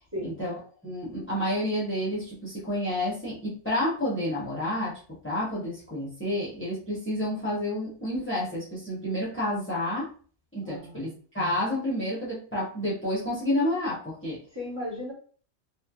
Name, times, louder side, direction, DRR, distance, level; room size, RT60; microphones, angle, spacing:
voice 1, 0.2-0.5 0.8-10.1 10.5-11.1 11.3-14.4, left 1 dB, 10° left, -8 dB, 0.9 m, -30 dB
voice 2, 10.6-11.2 14.5-15.1, left 1 dB, 20° right, -4 dB, 1.4 m, -36 dB
3.1 x 2.6 x 2.3 m, 0.42 s
omnidirectional pair, 1.2 m